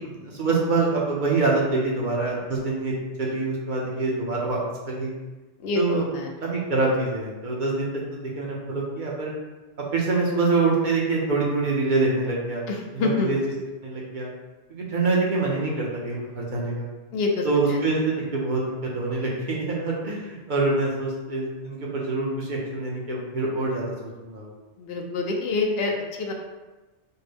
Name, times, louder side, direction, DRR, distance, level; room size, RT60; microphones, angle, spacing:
voice 1, 0.0-4.6 4.9-5.1 5.7-6.1 6.4-9.3 9.9-12.6 12.9-13.4 13.8-14.3 14.7-16.9 17.4-18.6 18.9-23.9 24.2-24.5, right 3 dB, 45° right, -3 dB, 0.8 m, -25 dB
voice 2, 5.6-6.3 12.7-13.3 17.1-17.8 24.8-26.3, left 3 dB, 65° left, 1 dB, 0.7 m, -26 dB
4.4 x 2.1 x 3.3 m, 1.1 s
omnidirectional pair, 1.2 m